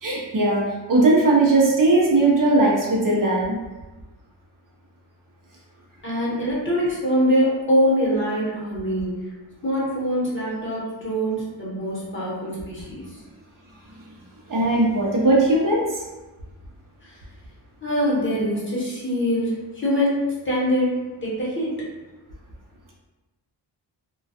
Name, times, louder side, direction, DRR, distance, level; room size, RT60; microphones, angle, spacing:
voice 1, 0.0-3.6 14.5-16.0, right 2 dB, 45° right, -4 dB, 0.6 m, -19 dB
voice 2, 6.0-9.3 9.6-13.2 17.0-17.2 17.8-21.8, equal, 25° left, -7 dB, 1.0 m, -24 dB
2.2 x 2.2 x 2.7 m, 1.1 s
cardioid pair, 75°, 44 cm